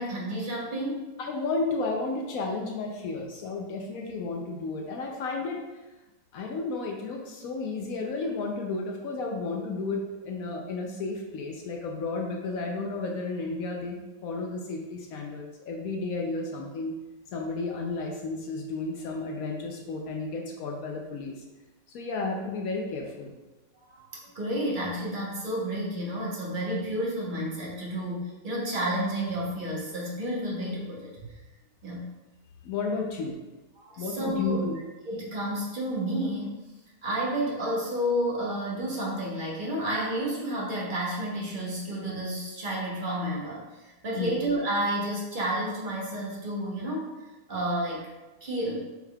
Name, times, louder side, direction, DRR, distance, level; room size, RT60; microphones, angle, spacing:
voice 1, 0.0-1.0 23.7-31.3 31.8-32.1 33.8-34.6 35.1-36.6 37.0-47.1 47.5-48.1 48.4-48.9, right 1 dB, 40° right, -3 dB, 0.7 m, -31 dB
voice 2, 1.2-5.6 6.3-14.0 14.2-17.0 17.3-21.4 21.9-23.3 32.6-33.4 34.0-34.8 44.1-44.3, left 3 dB, 75° left, 1 dB, 0.8 m, -32 dB
6.3 x 3.4 x 2.3 m, 1.1 s
omnidirectional pair, 2.0 m